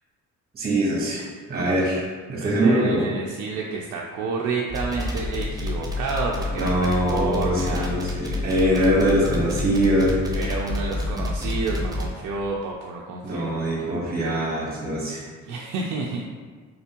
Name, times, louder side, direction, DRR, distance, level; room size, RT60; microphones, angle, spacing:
voice 1, 0.5-1.2 1.5-3.0 6.5-10.2 13.2-15.2, right 1 dB, 30° right, -3 dB, 1.2 m, -23 dB
voice 2, 2.4-7.9 10.3-13.9 15.4-16.2, right 3 dB, 80° right, -2 dB, 0.5 m, -30 dB
sound 1, 4.7-12.1, left 2 dB, 10° right, 0.6 m, -28 dB
3.6 x 3.3 x 2.9 m, 1.5 s
cardioid pair, 90°, 30 cm